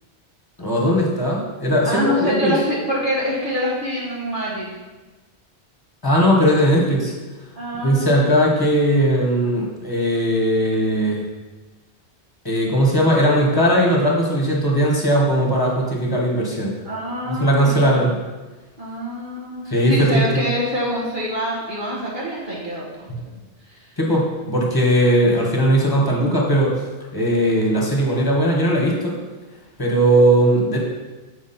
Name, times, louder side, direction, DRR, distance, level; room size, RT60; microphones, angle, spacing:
voice 1, 0.6-2.5 6.0-7.1 7.8-11.3 12.4-16.7 17.3-18.1 19.7-20.4 24.0-26.7 27.1-29.1 29.8-30.8, equal, 20° left, -2 dB, 1.4 m, -18 dB
voice 2, 1.8-4.7 7.5-8.7 16.8-18.1 18.8-19.6 19.8-22.9 23.2-23.4 23.7-23.9, equal, 50° right, -6 dB, 1.5 m, -25 dB
7.3 x 4.6 x 4.3 m, 1.2 s
omnidirectional pair, 1.1 m